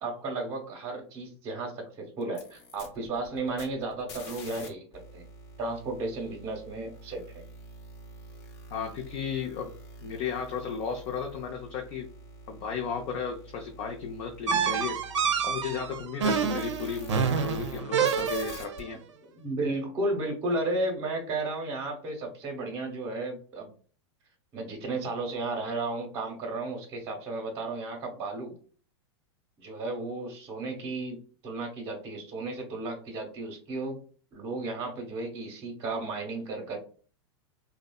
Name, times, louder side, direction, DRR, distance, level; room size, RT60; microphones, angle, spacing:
voice 1, 0.0-5.2 5.6-7.4 19.4-23.7 24.5-28.5 29.6-31.2 31.4-34.0 34.3-36.8, right 2 dB, 30° right, 1 dB, 0.8 m, -34 dB
sound 1, 2.2-4.7 4.9-17.8 18.0-18.8, equal, 60° left, 0.8 m, -47 dB
voice 2, 8.7-9.7 10.0-12.1 12.5-15.0 15.4-19.0, left 6 dB, 40° left, 2 dB, 0.4 m, -34 dB
sound 2, 14.5-18.8, right 6 dB, 85° right, 0.5 m, -28 dB
2.7 x 2.1 x 2.2 m, 0.40 s
hypercardioid pair, 110°, 15 cm